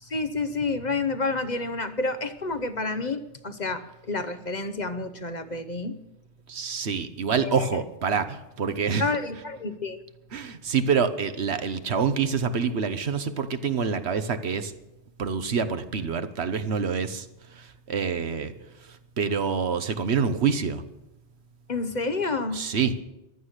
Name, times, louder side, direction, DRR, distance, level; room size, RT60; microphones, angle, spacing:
voice 1, 0.0-6.0 7.3-7.8 9.0-10.0 21.7-22.6, left 3 dB, 40° left, 10 dB, 1.0 m, -29 dB
voice 2, 6.5-9.0 10.3-14.7 15.2-18.5 18.8-20.8 22.5-23.0, right 6 dB, 70° right, 10 dB, 1.3 m, -27 dB
15.0 x 11.5 x 6.6 m, 0.93 s
omnidirectional pair, 1.2 m